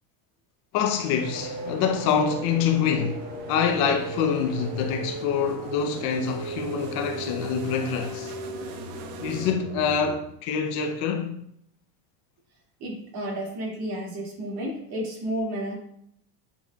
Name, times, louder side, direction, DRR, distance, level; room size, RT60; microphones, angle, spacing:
voice 1, 0.7-8.4 9.2-11.4, left 7 dB, 50° left, 0.7 m, -26 dB
sound 1, 0.9-9.5, right 5 dB, 70° right, 0.9 m, -45 dB
sound 2, 1.2-10.1, right 2 dB, 15° right, 0.7 m, -36 dB
voice 2, 12.8-15.8, equal, 50° right, 2.3 m, -31 dB
9.5 x 4.2 x 2.3 m
cardioid pair, 155°, 49 cm